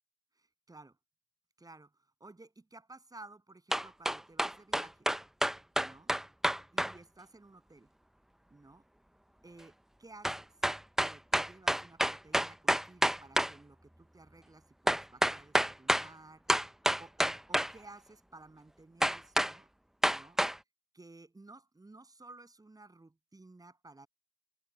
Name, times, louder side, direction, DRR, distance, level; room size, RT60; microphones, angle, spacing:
voice 1, 0.3-1.0 1.6-1.9 2.2-5.1 5.8-6.1 6.7-7.9 8.5-8.9 9.4-10.5 11.0-16.6 17.0-19.7 20.1-20.4 20.9-24.1, right 2 dB, 20° right, 7.8 m, -55 dB
sound 1, 3.7-6.9 10.2-13.5 14.9-16.1 16.5-17.7 19.0-19.5 20.0-20.6, equal, ahead, 0.4 m, -28 dB
cardioid pair, 90°, 20 cm